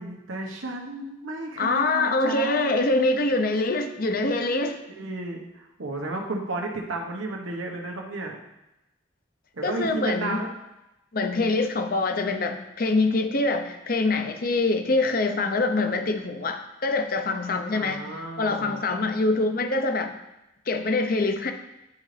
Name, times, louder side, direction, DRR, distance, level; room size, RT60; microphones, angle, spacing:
voice 1, 0.0-2.7 4.9-8.4 9.6-10.5 17.7-18.8, right 2 dB, 85° right, 1 dB, 1.2 m, -33 dB
voice 2, 1.6-4.8 9.6-10.4 11.1-18.0 18.4-20.1 20.7-21.5, left 3 dB, 45° left, 6 dB, 0.7 m, -24 dB
11.0 x 3.8 x 3.3 m, 0.93 s
head